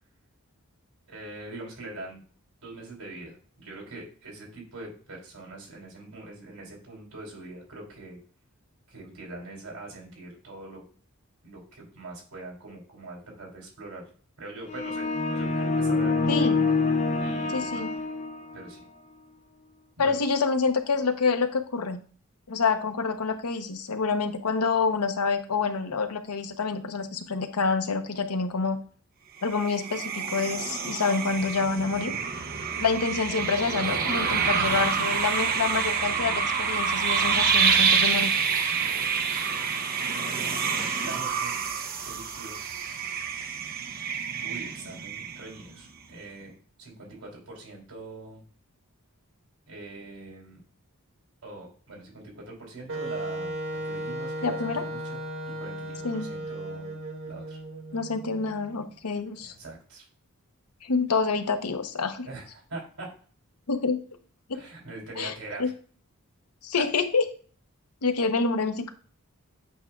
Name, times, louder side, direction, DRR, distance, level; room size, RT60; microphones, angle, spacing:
voice 1, 1.1-2.2 2.6-8.2 8.9-10.8 11.4-14.1 14.4-16.5 17.2-17.8 18.5-18.8 20.0-20.2 38.7-39.1 40.7-41.6 42.0-42.6 44.4-46.5 46.8-48.4 49.7-50.6 51.4-53.5 53.8-55.2 55.4-56.9 57.3-57.6 59.4-60.0 62.2-63.1 64.5-65.6, right 2 dB, 80° right, -1 dB, 3.2 m, -43 dB
sound 1, 14.7-18.7, left 3 dB, 30° left, 0.5 m, -26 dB
voice 2, 16.3-16.6 17.5-17.9 20.0-22.0 22.5-28.8 29.4-32.1 32.8-38.3 54.4-54.8 56.0-56.3 57.9-59.5 60.8-62.3 63.7-64.0 64.5-64.6 65.2-65.3 65.6-65.7 66.6-67.3 68.0-68.9, left 4 dB, 90° left, 7 dB, 0.8 m, -27 dB
sound 2, 29.4-45.7, right 6 dB, 40° right, 0.7 m, -27 dB
Wind instrument woodwind instrument, 52.9-58.7, right 1 dB, 60° right, 1.4 m, -36 dB
8.2 x 5.6 x 2.3 m, 0.42 s
head